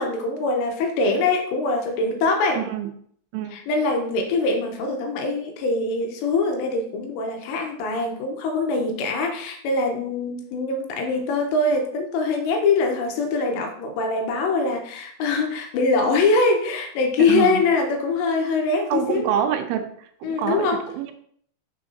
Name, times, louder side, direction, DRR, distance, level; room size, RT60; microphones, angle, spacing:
voice 1, 0.0-2.7 3.5-19.3 20.2-20.8, left 3 dB, 80° left, 3 dB, 2.8 m, -23 dB
voice 2, 2.5-2.9 3.3-3.6 17.2-17.6 18.9-20.7 21.0-21.1, right 9 dB, 85° right, 6 dB, 3.1 m, -26 dB
6.6 x 6.3 x 2.7 m, 0.63 s
omnidirectional pair, 5.5 m